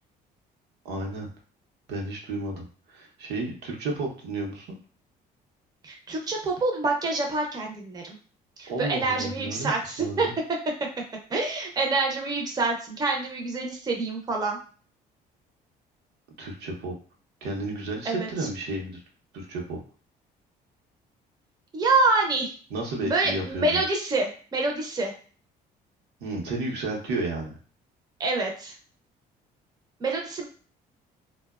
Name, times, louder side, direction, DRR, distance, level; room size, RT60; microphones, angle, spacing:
voice 1, 0.8-1.3 1.9-4.8 8.7-10.3 16.4-16.9 17.4-19.0 19.3-19.8 22.7-23.8 26.2-27.5, right 2 dB, 80° right, 0 dB, 0.7 m, -32 dB
voice 2, 5.8-8.2 8.6-10.3 11.3-14.6 18.1-18.3 21.7-22.5 23.0-25.1 28.2-28.7 30.0-30.4, right 3 dB, 25° right, 1 dB, 0.5 m, -26 dB
2.7 x 2.1 x 2.3 m, 0.41 s
cardioid pair, 110°, 17 cm